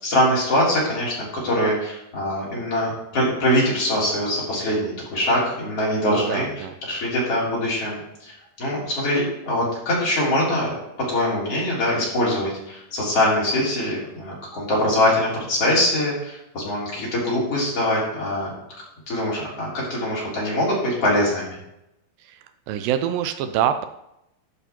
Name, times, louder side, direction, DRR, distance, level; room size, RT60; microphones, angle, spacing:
voice 1, 0.0-10.7 11.1-18.5 19.1-21.6, left 1 dB, 35° left, -6 dB, 4.3 m, -23 dB
voice 2, 6.1-6.7 22.2-22.4 22.7-23.9, right 10 dB, 85° right, 8 dB, 2.0 m, -25 dB
12.0 x 5.7 x 4.5 m, 0.84 s
omnidirectional pair, 4.7 m